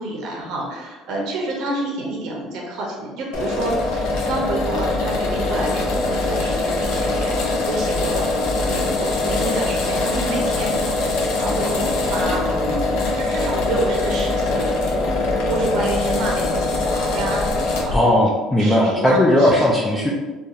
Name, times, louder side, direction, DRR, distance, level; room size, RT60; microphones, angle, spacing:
voice 1, 0.0-18.3 18.6-19.6, right 2 dB, 60° right, -1 dB, 0.5 m, -29 dB
sound 1, 3.3-18.0, left 2 dB, 75° left, 0.5 m, -22 dB
voice 2, 17.9-20.1, left 1 dB, 5° left, -3 dB, 0.3 m, -17 dB
2.7 x 2.2 x 2.4 m, 1.2 s
cardioid pair, 140°, 0 cm